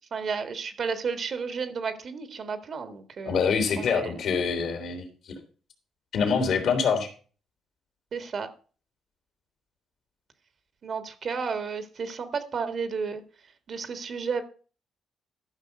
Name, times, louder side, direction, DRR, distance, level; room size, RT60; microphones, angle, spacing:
voice 1, 0.1-3.4 3.8-4.1 8.1-8.5 10.8-13.2 13.7-14.4, right 5 dB, 50° right, 10 dB, 1.5 m, -32 dB
voice 2, 3.2-5.3 6.1-7.1, left 5 dB, 70° left, 5 dB, 3.0 m, -25 dB
13.0 x 5.8 x 5.3 m, 0.39 s
cardioid pair, 90°, 0 cm